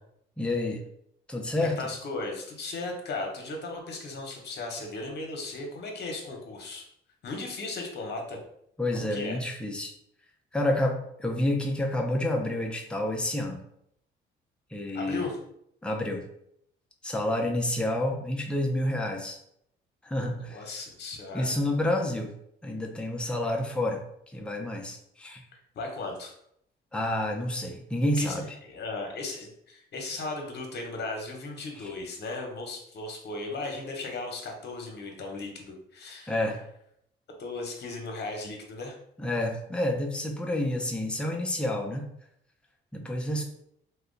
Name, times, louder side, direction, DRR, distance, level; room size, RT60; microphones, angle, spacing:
voice 1, 0.4-0.8 1.3-1.8 8.8-9.9 10.5-13.6 14.7-15.3 15.8-16.2 17.0-19.4 20.0-20.6 21.3-22.3 22.6-24.0 24.3-25.4 26.9-28.5 31.8-31.9 36.3-36.6 39.2-42.1 42.9-43.4, left 1 dB, 5° left, 1 dB, 0.5 m, -29 dB
voice 2, 1.6-6.8 7.2-8.4 8.9-9.4 14.9-15.4 20.3-21.7 25.5-26.3 28.2-36.3 37.4-39.0, left 3 dB, 55° left, 2 dB, 0.9 m, -36 dB
2.9 x 2.2 x 3.8 m, 0.73 s
cardioid pair, 90°, 20 cm